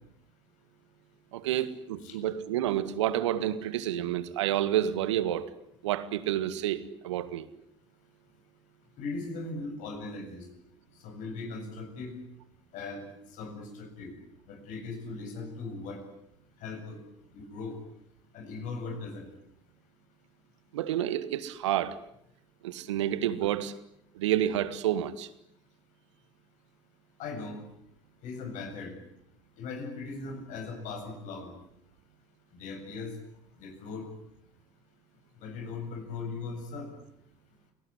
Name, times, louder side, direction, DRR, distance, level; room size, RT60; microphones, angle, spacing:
voice 1, 1.3-5.5 5.8-7.5 20.7-22.0 22.6-23.7 24.2-25.3, right 12 dB, 75° right, 15 dB, 1.8 m, -29 dB
voice 2, 9.0-10.5 11.0-12.2 12.7-14.1 14.5-16.0 16.6-17.0 17.3-17.8 18.3-19.3 27.2-27.6 28.2-28.9 29.6-31.5 32.5-33.1 33.6-34.1 35.4-36.9, left 3 dB, 55° left, 5 dB, 7.8 m, -39 dB
29.5 x 18.5 x 9.9 m, 0.74 s
figure-of-eight pair, 65°, 15 cm